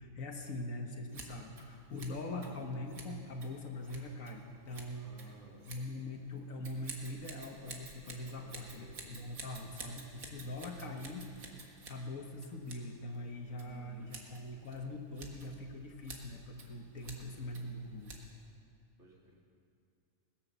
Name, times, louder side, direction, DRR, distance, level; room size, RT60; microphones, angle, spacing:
voice 1, 0.0-5.4 5.7-11.3 11.7-18.1, left 2 dB, 70° left, 3 dB, 1.7 m, -43 dB
Scissors, 1.1-18.6, right 3 dB, 70° right, 2.1 m, -52 dB
voice 2, 4.9-5.7 8.4-9.0 10.6-11.1 13.6-14.1 17.0-17.5 19.0-19.4, right 1 dB, 50° right, -2 dB, 3.0 m, -58 dB
19.0 x 10.5 x 7.0 m, 2.4 s
omnidirectional pair, 1.5 m